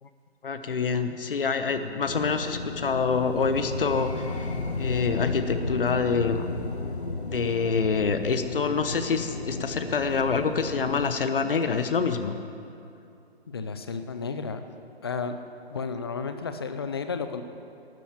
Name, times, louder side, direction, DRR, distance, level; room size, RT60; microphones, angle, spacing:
voice 1, 0.4-4.5 4.7-6.5 7.2-12.3, left 5 dB, 60° left, 9 dB, 1.1 m, -26 dB
sound 1, 2.1-11.1, left 3 dB, 85° left, 1.6 m, -33 dB
voice 2, 13.5-14.6 15.0-15.4 15.7-17.4, left 5 dB, 25° left, 9 dB, 0.5 m, -32 dB
12.0 x 9.2 x 8.8 m, 2.6 s
figure-of-eight pair, 150°, 32 cm